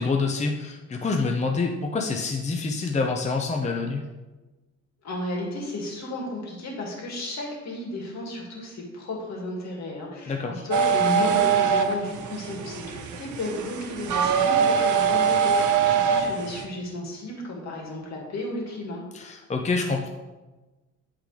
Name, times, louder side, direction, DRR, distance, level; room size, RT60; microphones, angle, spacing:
voice 1, 0.0-4.0 10.3-10.6 19.1-20.1, left 4 dB, 25° left, 2 dB, 0.7 m, -27 dB
voice 2, 5.0-19.0, left 1 dB, 65° left, -1 dB, 2.2 m, -33 dB
sound 1, 10.7-16.6, right 7 dB, 80° right, 0.8 m, -23 dB
11.5 x 3.9 x 3.3 m, 1.2 s
cardioid pair, 90°, 30 cm